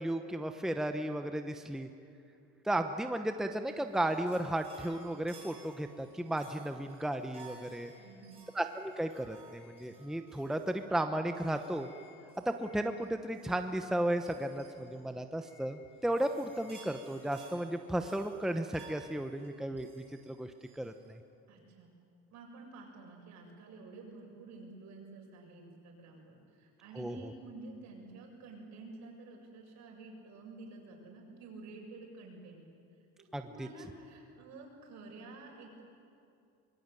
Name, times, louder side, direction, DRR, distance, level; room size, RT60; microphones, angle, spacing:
voice 1, 0.0-1.9 2.6-7.9 8.5-11.9 12.5-21.2 27.0-27.2 33.3-33.7, right 1 dB, ahead, 6 dB, 0.9 m, -34 dB
sound 1, 3.6-21.1, right 3 dB, 20° right, 6.3 m, -58 dB
voice 2, 8.0-8.4 21.5-21.9 22.3-32.6 33.2-35.8, right 3 dB, 65° right, 0 dB, 7.4 m, -50 dB
24.0 x 21.5 x 9.2 m, 2.5 s
cardioid pair, 125°, 30 cm